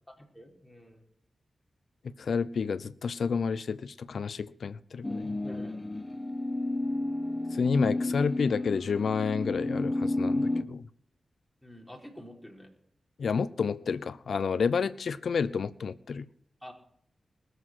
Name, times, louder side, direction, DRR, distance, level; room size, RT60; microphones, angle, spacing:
voice 1, 0.1-1.0 5.4-5.8 11.6-12.7 16.6-16.7, equal, 5° left, 4.8 m, -47 dB
voice 2, 2.2-5.3 7.5-10.8 13.2-16.3, left 5 dB, 75° left, 0.6 m, -30 dB
sound 1, 5.0-10.6, left 2 dB, 25° left, 1.2 m, -31 dB
20.5 x 7.9 x 6.3 m
cardioid pair, 50°, 0 cm